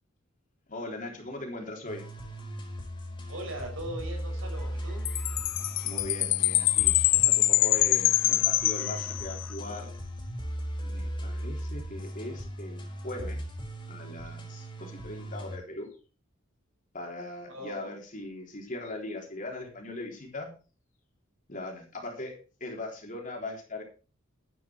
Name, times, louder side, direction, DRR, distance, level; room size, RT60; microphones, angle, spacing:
voice 1, 0.7-2.0 5.8-9.9 10.8-13.4 13.9-15.9 16.9-20.5 21.5-23.8, left 2 dB, 40° left, 1 dB, 3.6 m, -40 dB
sound 1, 1.9-15.6, equal, 25° left, 4.1 m, -38 dB
voice 2, 3.3-5.0 17.5-17.9, right 1 dB, 80° right, 2 dB, 6.0 m, -39 dB
sound 2, 4.6-9.6, equal, 5° left, 2.1 m, -53 dB
Chime, 5.1-9.5, left 17 dB, 65° left, 0.5 m, -25 dB
11.5 x 9.3 x 4.5 m, 0.36 s
head